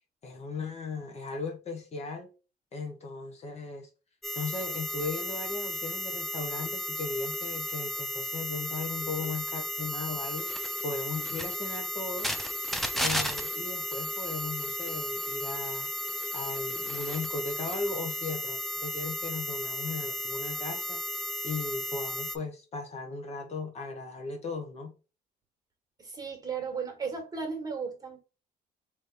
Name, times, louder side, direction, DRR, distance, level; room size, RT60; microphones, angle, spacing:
voice 1, 0.2-2.3 2.7-3.9 4.3-10.5 10.8-12.4 13.0-15.9 16.3-21.0 21.4-25.0, left 3 dB, 40° left, 1.1 m, -37 dB
sound 1, 4.2-22.4, left 1 dB, ahead, 0.6 m, -34 dB
voice 2, 26.0-28.2, right 5 dB, 20° right, 1.7 m, -35 dB
3.3 x 3.1 x 4.0 m
cardioid pair, 110°, 17 cm